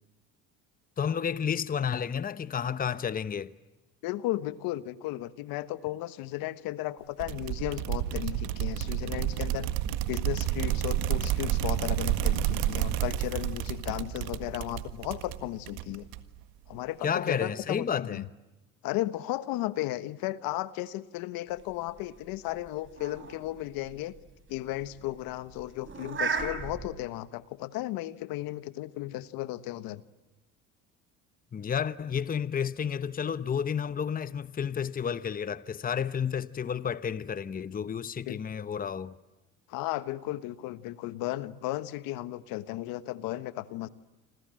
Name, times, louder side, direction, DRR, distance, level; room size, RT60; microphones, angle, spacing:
voice 1, 1.0-3.5 17.0-18.3 31.5-39.1, left 7 dB, 25° left, 0.9 m, -31 dB
voice 2, 4.0-9.7 10.1-16.1 16.7-18.3 18.8-24.1 24.5-30.0 38.3-38.4 39.7-43.9, left 16 dB, 75° left, 1.4 m, -35 dB
sound 1, 7.2-16.4, right 12 dB, 80° right, 1.8 m, -30 dB
sound 2, 21.6-26.9, right 5 dB, 35° right, 5.7 m, -37 dB
27.0 x 27.0 x 7.7 m
supercardioid pair, 100°, 36 cm